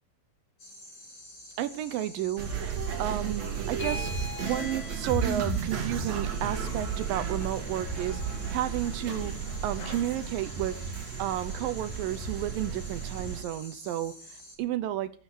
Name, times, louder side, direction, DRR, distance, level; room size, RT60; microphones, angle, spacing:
sound 1, 0.6-14.6, left 1 dB, 30° left, 5.4 m, -48 dB
voice 1, 1.6-2.5 3.0-4.1 4.4-9.3 9.6-10.8 11.2-15.1, right 12 dB, 75° right, 12 dB, 2.2 m, -32 dB
sound 2, 2.4-13.4, right 6 dB, 50° right, 2.8 m, -33 dB
sound 3, 3.7-10.3, left 4 dB, 55° left, 2.6 m, -43 dB
16.0 x 9.2 x 7.8 m, 0.44 s
omnidirectional pair, 4.7 m